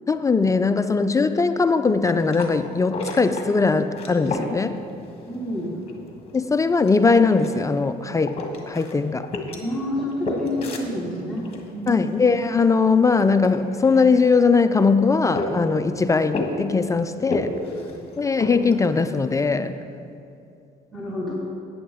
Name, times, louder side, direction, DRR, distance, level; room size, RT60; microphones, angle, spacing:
voice 1, 0.1-4.8 6.3-8.4 8.7-9.3 11.9-17.5 18.2-19.8, left 4 dB, 20° left, 10 dB, 0.3 m, -20 dB
sound 1, 1.8-19.7, left 2 dB, 35° left, 1.5 m, -34 dB
voice 2, 5.3-5.7 9.6-11.5 11.7-12.1 20.9-21.3, left 1 dB, 5° left, -7 dB, 1.6 m, -28 dB
14.0 x 9.3 x 3.5 m, 2.5 s
cardioid pair, 110°, 17 cm